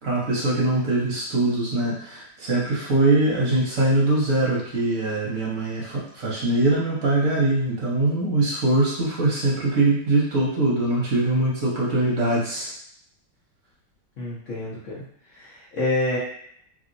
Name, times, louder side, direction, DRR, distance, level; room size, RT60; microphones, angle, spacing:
voice 1, 0.0-12.7, right 2 dB, 50° right, -6 dB, 1.1 m, -22 dB
voice 2, 14.2-15.0 15.3-16.2, left 2 dB, 70° left, -8 dB, 0.7 m, -27 dB
3.2 x 2.8 x 2.6 m, 0.66 s
omnidirectional pair, 2.4 m